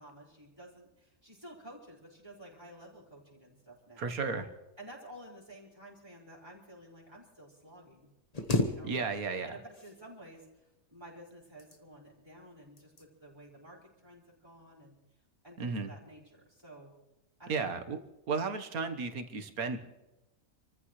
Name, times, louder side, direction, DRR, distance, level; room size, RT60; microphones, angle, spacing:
voice 1, 0.0-4.1 4.8-8.1 8.6-8.9 9.5-15.0 15.4-16.9 17.4-17.7, right 1 dB, 15° right, -5 dB, 5.2 m, -52 dB
voice 2, 4.0-4.5 8.8-9.6 15.6-15.9 17.5-18.0 18.3-19.8, right 4 dB, 80° right, 8 dB, 1.7 m, -34 dB
sound 1, 8.3-9.4 9.7-10.4 11.3-12.1 12.8-13.1 13.5-13.8, left 2 dB, 30° left, 1.3 m, -34 dB
28.5 x 14.5 x 3.2 m, 1.0 s
omnidirectional pair, 1.5 m